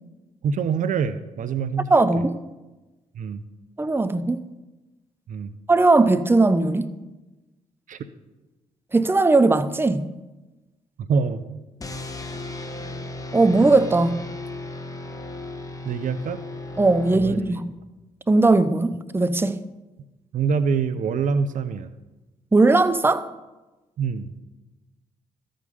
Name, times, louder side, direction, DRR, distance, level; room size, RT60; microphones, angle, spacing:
voice 1, 0.4-1.9 3.2-3.4 5.3-5.6 7.9-8.0 11.1-11.4 15.8-16.4 17.1-17.5 20.3-21.9 24.0-24.3, right 5 dB, 65° right, 0.6 m, -25 dB
voice 2, 1.9-2.4 3.8-4.4 5.7-6.9 8.9-10.0 13.3-14.2 16.8-17.7 18.3-19.6 22.5-23.3, right 3 dB, 15° right, 0.6 m, -19 dB
sound 1, 11.8-17.7, left 2 dB, 25° left, 1.3 m, -35 dB
13.5 x 5.1 x 5.5 m
supercardioid pair, 50°, 14 cm